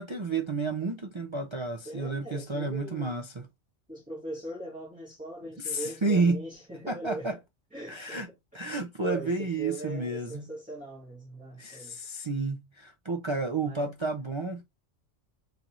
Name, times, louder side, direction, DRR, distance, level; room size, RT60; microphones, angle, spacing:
voice 1, 0.0-3.4 5.6-6.4 6.9-7.4 7.9-8.3 8.5-10.5 11.6-14.6, right 3 dB, 45° right, 0.4 m, -31 dB
voice 2, 1.8-3.2 3.9-7.4 7.7-8.3 9.0-12.0 13.6-13.9, right 1 dB, 5° right, 1.8 m, -40 dB
3.8 x 3.4 x 2.9 m
omnidirectional pair, 1.3 m